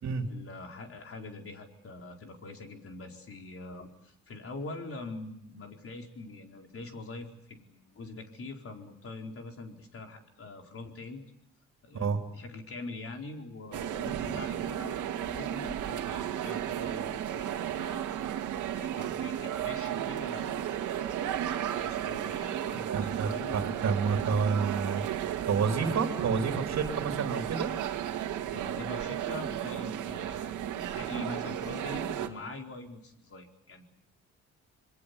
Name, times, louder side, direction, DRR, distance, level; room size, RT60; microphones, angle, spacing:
voice 1, 0.3-11.2 11.8-18.0 18.7-23.6 28.5-33.9, left 3 dB, 45° left, 3 dB, 4.5 m, -44 dB
sound 1, 13.7-32.3, right 10 dB, 80° right, 2.2 m, -34 dB
voice 2, 22.7-25.0 25.4-27.7, right 5 dB, 55° right, 4 dB, 3.4 m, -29 dB
27.0 x 22.0 x 8.3 m, 0.72 s
cardioid pair, 90°, 30 cm